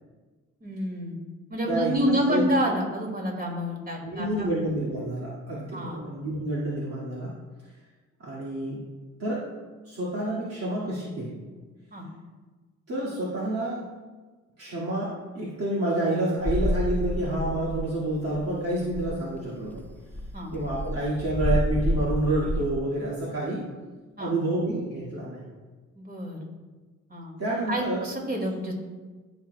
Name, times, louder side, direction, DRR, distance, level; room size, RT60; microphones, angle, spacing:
voice 1, 0.6-1.2 1.5-4.5 5.7-6.0 11.9-12.1 20.3-20.5 24.2-24.3 25.9-26.4 27.1-27.3 27.7-28.7, equal, 30° right, 0 dB, 2.4 m, -28 dB
voice 2, 1.7-2.4 4.0-7.3 8.2-8.8 9.2-9.5 9.8-11.4 12.9-13.8 14.6-19.8 20.5-23.6 24.2-25.5 27.4-28.0, right 1 dB, 55° right, -7 dB, 2.2 m, -29 dB
sound 1, 16.4-18.1 18.3-18.5 18.7-19.2 19.7-22.8, equal, 5° left, 0.5 m, -29 dB
14.5 x 6.1 x 2.3 m, 1.3 s
cardioid pair, 90°, 30 cm